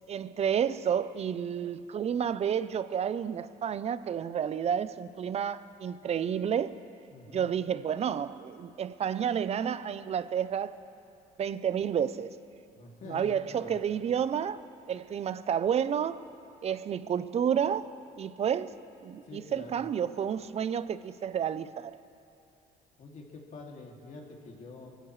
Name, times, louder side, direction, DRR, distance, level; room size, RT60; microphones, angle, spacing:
voice 1, 0.1-6.7 7.3-10.8 11.4-12.3 13.1-14.6 14.9-16.2 16.6-18.8 19.0-22.0, right 8 dB, 40° right, 0.6 m, -30 dB
voice 2, 7.1-7.5 12.7-13.9 19.2-19.9 23.0-24.9, left 3 dB, 50° left, 2.6 m, -46 dB
24.0 x 15.5 x 3.2 m
cardioid pair, 110°, 17 cm